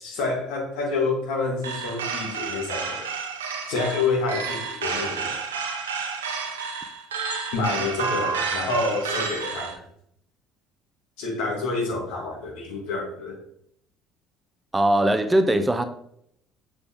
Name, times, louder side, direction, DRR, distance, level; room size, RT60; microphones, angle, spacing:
voice 1, 0.0-3.1 3.7-5.4 7.5-9.8 11.2-13.4, left 3 dB, 70° left, 2.1 m, -28 dB
sound 1, 1.6-9.8, right 5 dB, 85° right, 0.8 m, -30 dB
voice 2, 14.7-15.8, right 1 dB, 15° right, 0.7 m, -20 dB
6.9 x 5.1 x 3.6 m
hypercardioid pair, 55°, 0 cm